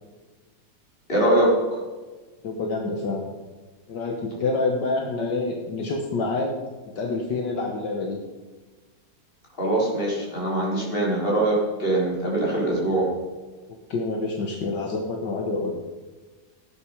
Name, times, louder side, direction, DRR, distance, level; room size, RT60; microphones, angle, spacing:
voice 1, 1.1-1.8 9.6-13.1, right 1 dB, 30° left, -4 dB, 4.7 m, -22 dB
voice 2, 2.4-3.2 3.9-6.6 7.0-8.2 13.9-15.8, left 3 dB, 70° left, 1 dB, 2.0 m, -27 dB
17.0 x 9.0 x 5.1 m, 1.3 s
omnidirectional pair, 2.0 m